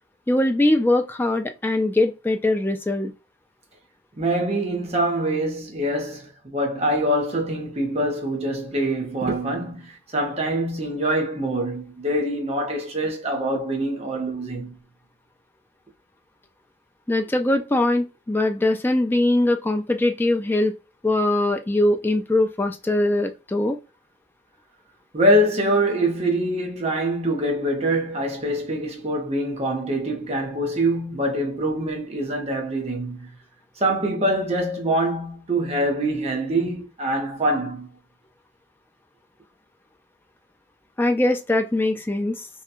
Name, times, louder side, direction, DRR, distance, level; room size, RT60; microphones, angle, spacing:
voice 1, 0.3-3.1 17.1-20.7 21.0-23.8 41.0-42.4, left 1 dB, 10° left, 0.3 m, -21 dB
voice 2, 4.2-14.8 25.1-33.3 33.8-37.9, right 1 dB, 35° right, 0.7 m, -24 dB
2.8 x 2.2 x 2.4 m
head